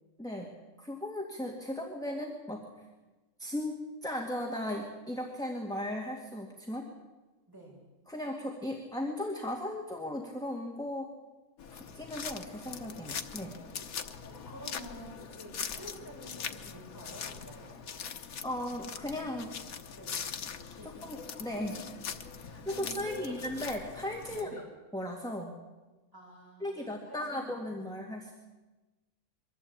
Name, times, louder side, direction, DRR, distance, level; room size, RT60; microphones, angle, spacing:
voice 1, 0.2-2.9 3.4-6.9 8.1-11.1 11.7-13.6 18.4-19.5 21.0-21.7 22.7-24.5 24.9-25.5 26.6-28.3, left 1 dB, 5° left, 0 dB, 2.0 m, -37 dB
voice 2, 7.5-7.8 13.8-17.8 19.9-20.2 20.8-21.2 21.5-21.8 22.3-23.4 24.3-24.7 26.1-27.8, equal, 15° right, -3 dB, 6.8 m, -49 dB
sound 1, 11.6-24.4, left 6 dB, 85° left, 1.5 m, -42 dB
23.5 x 14.5 x 8.7 m, 1.2 s
omnidirectional pair, 1.5 m